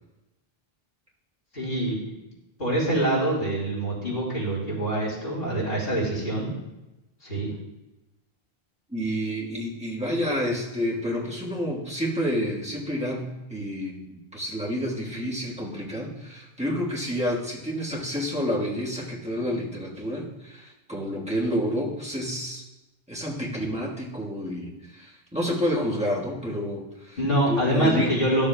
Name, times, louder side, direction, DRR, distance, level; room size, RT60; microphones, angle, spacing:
voice 1, 1.5-2.0 2.6-6.5 7.2-7.5 27.2-28.5, right 1 dB, 70° left, -5 dB, 3.0 m, -25 dB
voice 2, 8.9-22.6 23.1-27.2 27.5-28.2, equal, 5° right, -5 dB, 1.4 m, -29 dB
12.5 x 7.0 x 2.2 m, 1.0 s
omnidirectional pair, 1.0 m